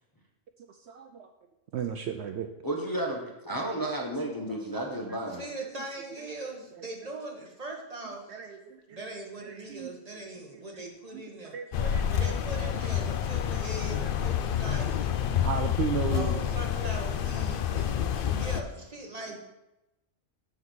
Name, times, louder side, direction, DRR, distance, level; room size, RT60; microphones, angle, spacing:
voice 1, 0.7-1.3 1.7-2.5 4.4-4.6 4.9-5.2 6.7-6.8 8.3-9.0 9.4-9.9 10.4-10.5 11.1-11.2 11.5-12.3 12.6-12.7 13.9-14.0 15.3-16.4, right 7 dB, 65° right, 6 dB, 0.8 m, -35 dB
voice 2, 2.6-5.4, right 1 dB, 20° left, 0 dB, 0.8 m, -32 dB
voice 3, 5.3-8.3 8.9-15.3 16.1-19.4, right 2 dB, 30° right, 1 dB, 1.2 m, -40 dB
sound 1, 11.7-18.6, left 9 dB, 60° left, 0.6 m, -28 dB
7.5 x 4.0 x 6.2 m, 0.93 s
omnidirectional pair, 1.3 m